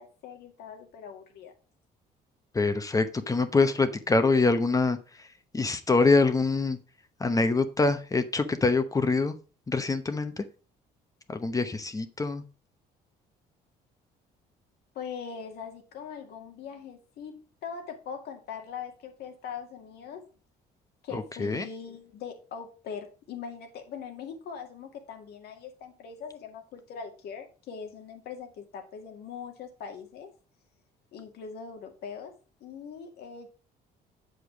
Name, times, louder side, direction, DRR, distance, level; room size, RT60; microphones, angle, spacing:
voice 1, 0.0-1.5 15.0-20.3 21.0-30.3 31.1-33.5, left 6 dB, 70° left, 4 dB, 2.0 m, -41 dB
voice 2, 2.5-5.3 5.5-6.8 7.2-9.4 9.7-10.4 11.3-12.4 21.1-21.6, left 3 dB, 20° left, 9 dB, 0.9 m, -25 dB
7.8 x 5.1 x 5.0 m, 0.34 s
cardioid pair, 110°, 17 cm